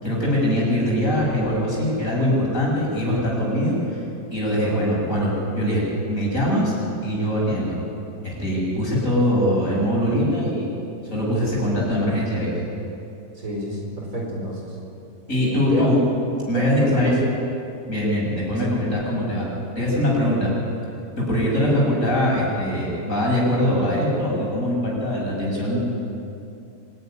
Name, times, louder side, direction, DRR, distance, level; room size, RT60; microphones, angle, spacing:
voice 1, 0.0-4.0 4.3-5.8 6.1-6.7 7.0-7.8 8.2-10.7 11.1-12.5 15.3-16.0 16.5-17.1 17.9-19.5 19.8-20.5 21.2-25.8, equal, 55° left, -4 dB, 6.9 m, -22 dB
voice 2, 13.4-14.6 15.5-15.9 16.5-17.1, right 1 dB, 60° right, -2 dB, 4.9 m, -29 dB
25.0 x 11.5 x 9.9 m, 2.7 s
omnidirectional pair, 1.7 m